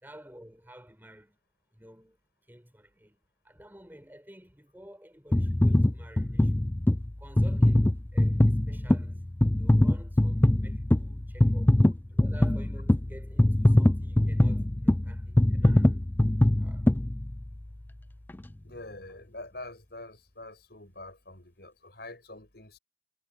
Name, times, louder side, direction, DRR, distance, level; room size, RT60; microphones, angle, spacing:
voice 1, 0.0-1.4 1.7-2.2 2.4-3.2 3.4-6.8 7.2-9.3 9.5-11.8 12.1-16.1 16.6-16.9, equal, 10° right, 5.7 m, -52 dB
sound 1, 5.3-17.7 18.3-18.4, left 1 dB, 10° left, 0.3 m, -23 dB
voice 2, 18.6-22.8, left 2 dB, 55° left, 7.4 m, -45 dB
head